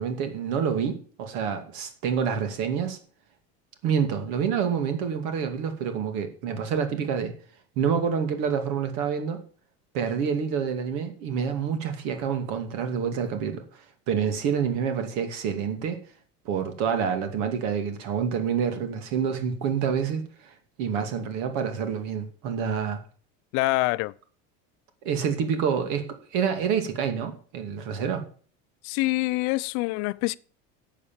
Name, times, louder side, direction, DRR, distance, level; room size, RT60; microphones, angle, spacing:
voice 1, 0.0-3.0 3.8-7.3 7.8-9.4 9.9-16.0 16.4-23.0 25.0-28.2, right 7 dB, 65° right, 2.4 m, -27 dB
voice 2, 23.5-24.1 28.8-30.4, left 21 dB, 60° left, 0.6 m, -25 dB
11.0 x 8.3 x 7.4 m
cardioid pair, 155°, 31 cm